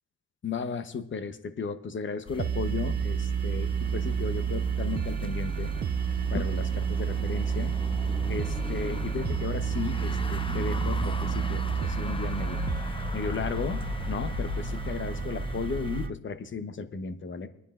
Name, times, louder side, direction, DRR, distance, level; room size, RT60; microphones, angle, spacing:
voice 1, 0.4-5.7 6.3-7.8 8.3-12.6 13.1-17.5, left 5 dB, 40° left, 10 dB, 1.0 m, -35 dB
sound 1, 2.3-16.1, left 4 dB, 20° left, 0.6 m, -37 dB
sound 2, 2.4-16.1, right 8 dB, 35° right, 0.4 m, -30 dB
23.0 x 9.7 x 2.5 m, 0.80 s
cardioid pair, 90°, 30 cm